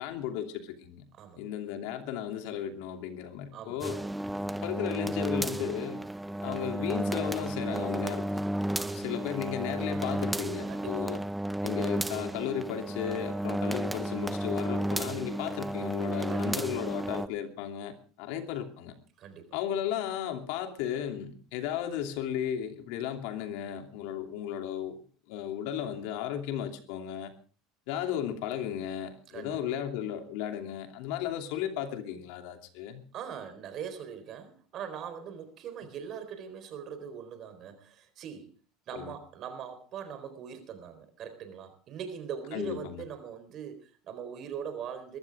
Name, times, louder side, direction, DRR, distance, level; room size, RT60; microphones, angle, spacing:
voice 1, 0.0-1.0 1.4-4.0 4.6-6.0 6.4-8.4 8.9-11.2 11.6-18.9 19.5-27.3 27.9-33.0 38.9-39.1 42.5-43.0, left 10 dB, 75° left, 6 dB, 2.8 m, -35 dB
voice 2, 3.5-4.0 8.8-9.2 10.7-11.1 16.3-16.6 19.2-19.6 29.3-29.6 33.1-38.5 38.9-45.2, right 7 dB, 45° right, 10 dB, 4.1 m, -41 dB
sound 1, 3.8-17.3, right 1 dB, 5° right, 0.6 m, -33 dB
22.5 x 14.0 x 3.6 m, 0.39 s
supercardioid pair, 120°, 0 cm